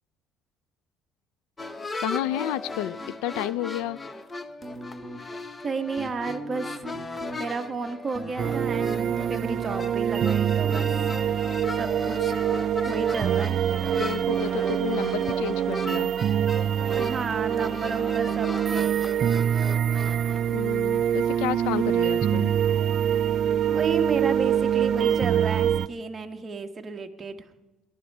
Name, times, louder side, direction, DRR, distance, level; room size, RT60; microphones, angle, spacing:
sound 1, 1.6-20.5, left 2 dB, 20° left, 0.9 m, -37 dB
voice 1, 2.0-4.0 14.0-16.1 20.5-22.5, left 14 dB, 90° left, 19 dB, 0.4 m, -31 dB
sound 2, 4.6-5.5 5.9-7.4 7.9-9.8 10.1-11.1, right 1 dB, 10° right, 1.5 m, -38 dB
voice 2, 5.2-6.9 7.4-10.9 11.8-12.4 12.8-13.6 16.9-19.3 23.7-27.4, right 4 dB, 25° right, 5 dB, 1.3 m, -32 dB
sound 3, 8.4-25.9, right 9 dB, 50° right, 0.4 m, -25 dB
19.0 x 11.5 x 5.4 m, 1.1 s
cardioid pair, 110°, 0 cm